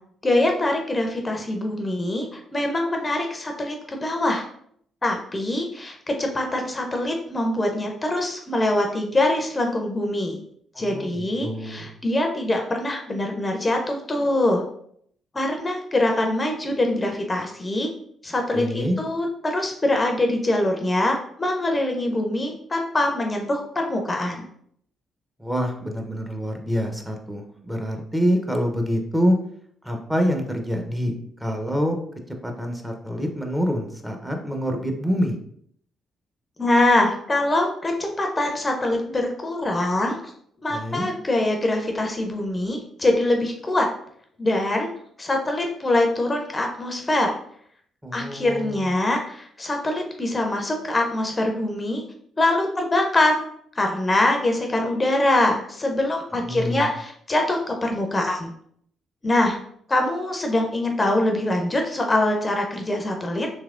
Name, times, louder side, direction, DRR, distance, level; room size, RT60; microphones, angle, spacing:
voice 1, 0.2-4.5 5.0-10.4 10.8-14.6 15.3-17.9 18.2-24.4 36.6-40.3 40.6-43.9 44.4-44.9 45.2-47.4 48.1-52.0 52.4-53.4 53.8-58.5 59.2-59.6 59.9-63.5, left 1 dB, 30° left, 2 dB, 0.6 m, -23 dB
voice 2, 10.7-11.9 18.5-19.0 25.4-29.4 29.8-31.1 31.4-32.0 32.4-35.4 40.7-41.1 48.0-48.9 56.4-56.9, equal, 10° right, 3 dB, 0.7 m, -26 dB
3.2 x 2.9 x 2.4 m, 0.66 s
hypercardioid pair, 50°, 0 cm